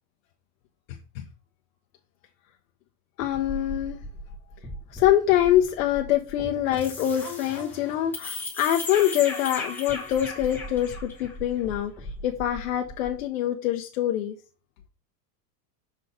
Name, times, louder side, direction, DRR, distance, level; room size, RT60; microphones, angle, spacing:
voice 1, 3.2-4.0 4.9-11.9 12.2-14.4, left 12 dB, 55° left, 3 dB, 0.9 m, -24 dB
sound 1, 3.2-13.3, left 2 dB, 5° left, 1.2 m, -37 dB
6.4 x 4.1 x 4.9 m, 0.36 s
supercardioid pair, 170°, 48 cm